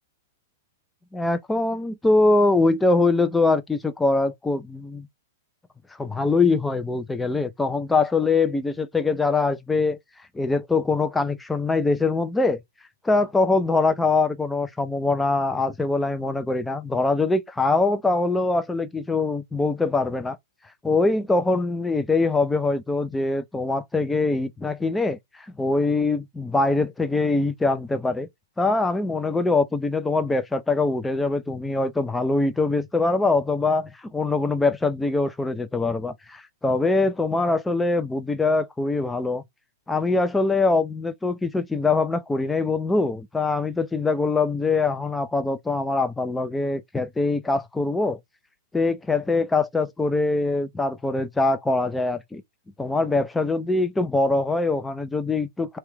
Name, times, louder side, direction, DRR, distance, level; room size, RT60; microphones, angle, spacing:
voice 1, 1.1-5.1 6.0-10.0 10.3-12.6 13.0-20.4 20.8-28.3 28.6-39.4 39.9-48.2 48.7-52.4 52.8-55.8, left 3 dB, 5° left, 0.5 m, -23 dB
3.2 x 3.0 x 4.6 m
hypercardioid pair, 140°, 0 cm